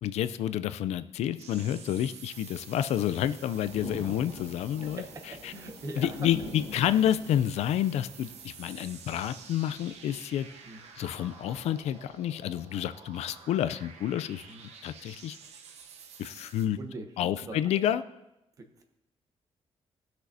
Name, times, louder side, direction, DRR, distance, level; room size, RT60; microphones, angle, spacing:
voice 1, 0.0-5.0 5.4-5.5 6.0-10.5 11.0-14.4 14.8-15.4 16.2-16.8 17.2-18.0, left 11 dB, 80° left, 13 dB, 0.4 m, -29 dB
sound 1, 1.4-16.7, right 6 dB, 85° right, 0.8 m, -50 dB
sound 2, 3.5-12.0, left 2 dB, 55° right, 3.2 m, -45 dB
voice 2, 5.0-6.1 10.6-10.8 14.5-14.6 16.8-17.1 17.4-17.6 18.6-18.8, right 2 dB, 30° right, 5 dB, 1.0 m, -41 dB
18.0 x 6.2 x 2.7 m, 0.91 s
cardioid pair, 175°, 11 cm